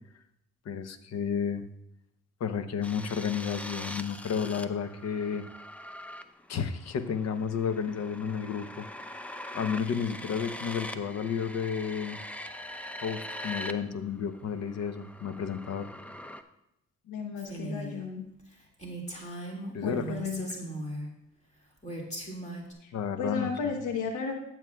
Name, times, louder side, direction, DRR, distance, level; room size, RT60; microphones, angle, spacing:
voice 1, 0.7-1.6 2.4-5.4 6.5-8.9 9.5-12.2 13.0-15.9 19.7-20.0 22.9-23.5, left 7 dB, 60° left, 10 dB, 0.8 m, -32 dB
sound 1, 2.8-13.7 14.0-16.4, left 1 dB, 5° left, 0.5 m, -42 dB
voice 2, 17.1-18.2 19.8-20.5 22.8-22.9 23.2-24.4, left 5 dB, 80° left, 4 dB, 1.1 m, -33 dB
Female speech woman speaking, 17.4-18.0 18.4-18.5 18.8-21.1 21.8-22.7, right 1 dB, 20° left, 2.2 m, -38 dB
14.0 x 7.6 x 2.3 m, 0.82 s
cardioid pair, 90°, 30 cm